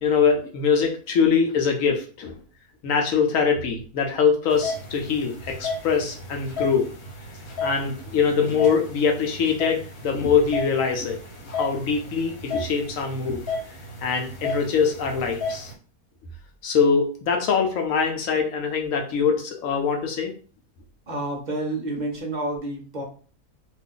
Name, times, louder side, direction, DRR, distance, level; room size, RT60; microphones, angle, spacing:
voice 1, 0.0-2.4 2.8-6.9 7.6-11.2 11.5-13.4 14.0-15.7 16.6-20.3, left 6 dB, 65° left, 3 dB, 0.9 m, -23 dB
sound 1, 4.5-15.7, left 3 dB, 80° left, 1.4 m, -34 dB
voice 2, 21.1-23.0, right 2 dB, 55° right, 0 dB, 0.5 m, -29 dB
2.6 x 2.5 x 3.6 m, 0.39 s
omnidirectional pair, 1.6 m